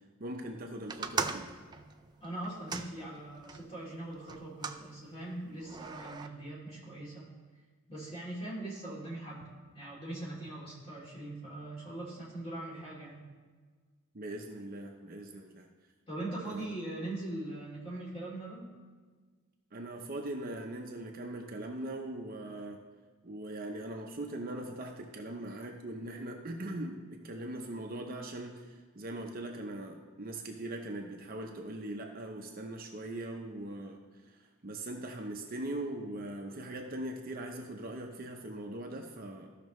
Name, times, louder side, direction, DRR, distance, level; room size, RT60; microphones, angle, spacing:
voice 1, 0.2-1.5 14.1-15.7 16.5-16.7 19.7-22.8 23.2-34.0 34.3-34.4 34.6-39.5, right 1 dB, 40° right, 2 dB, 0.7 m, -40 dB
sound 1, 0.9-3.6 4.3-4.8 5.6-6.3, right 5 dB, 20° right, 0.3 m, -38 dB
voice 2, 2.2-7.3 7.9-9.5 9.7-13.3 16.1-18.6, right 1 dB, 25° left, -6 dB, 2.9 m, -41 dB
14.5 x 5.8 x 3.1 m, 1.4 s
head